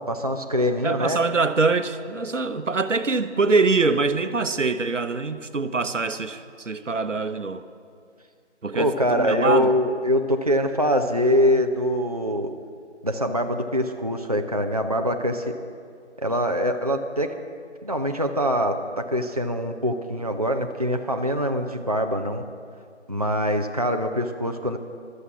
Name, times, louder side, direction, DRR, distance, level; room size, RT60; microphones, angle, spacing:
voice 1, 0.0-1.3 8.7-12.5 13.0-15.5 16.2-17.4 17.8-22.4 23.1-24.8, equal, 35° right, 5 dB, 0.5 m, -24 dB
voice 2, 0.8-7.6 8.6-9.7, right 4 dB, 85° right, 11 dB, 0.9 m, -24 dB
14.5 x 12.5 x 5.9 m, 2.3 s
figure-of-eight pair, 160°, 36 cm